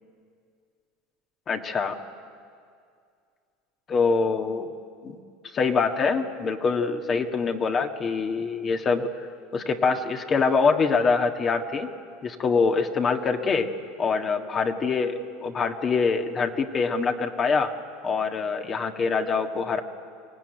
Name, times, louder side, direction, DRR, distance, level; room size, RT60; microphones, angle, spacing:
voice 1, 1.5-2.0 3.9-4.7 5.0-5.2 5.5-9.1 9.5-11.9 12.2-17.7 18.0-19.8, left 4 dB, 35° left, 5 dB, 1.7 m, -24 dB
24.0 x 17.5 x 9.3 m, 2.3 s
hypercardioid pair, 95°, 0 cm